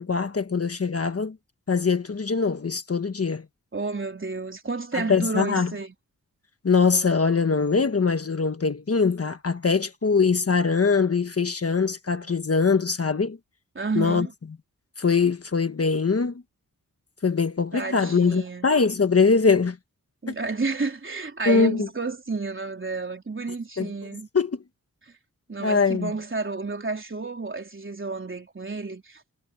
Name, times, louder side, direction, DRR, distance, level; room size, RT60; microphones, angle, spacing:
voice 1, 0.0-1.4 1.7-3.4 4.9-5.7 6.6-13.4 13.9-14.3 15.0-16.4 17.2-19.8 20.3-20.4 21.4-21.9 23.8-23.9 24.3-24.6 25.6-26.1, left 5 dB, 45° left, 1.4 m, -22 dB
voice 2, 3.7-5.9 13.8-14.3 17.7-18.7 20.2-24.3 25.5-29.2, right 3 dB, 35° right, 3.6 m, -31 dB
wide cardioid pair, 115°, 34 cm